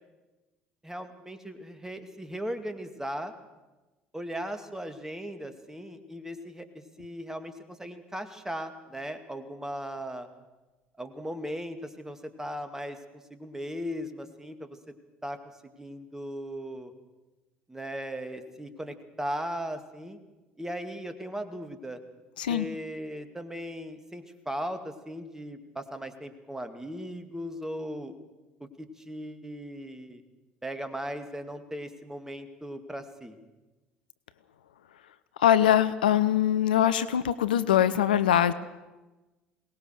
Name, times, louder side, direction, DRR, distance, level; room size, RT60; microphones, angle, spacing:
voice 1, 0.8-3.3 4.1-10.3 11.0-14.8 15.2-16.9 17.7-20.2 20.6-22.0 22.5-28.1 28.6-30.2 30.6-33.4, equal, 10° right, 8 dB, 2.4 m, -38 dB
voice 2, 35.4-38.5, left 10 dB, 75° left, 14 dB, 0.6 m, -22 dB
22.0 x 19.0 x 6.6 m, 1.1 s
figure-of-eight pair, 55°, 5 cm